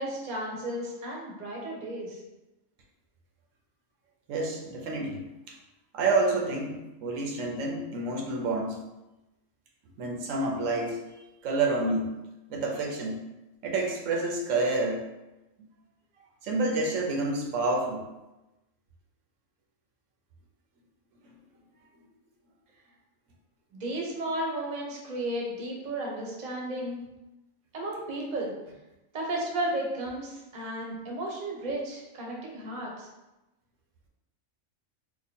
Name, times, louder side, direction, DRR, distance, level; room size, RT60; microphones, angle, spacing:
voice 1, 0.0-2.2 23.7-27.0 27.7-28.5 29.1-33.1, right 1 dB, 40° right, -2 dB, 0.8 m, -33 dB
voice 2, 4.3-5.5 5.9-8.8 10.0-11.0 11.4-12.1 12.5-13.2 13.6-15.0 16.4-18.0, right 2 dB, 85° right, 0 dB, 1.0 m, -28 dB
3.0 x 2.2 x 4.1 m, 0.99 s
omnidirectional pair, 1.3 m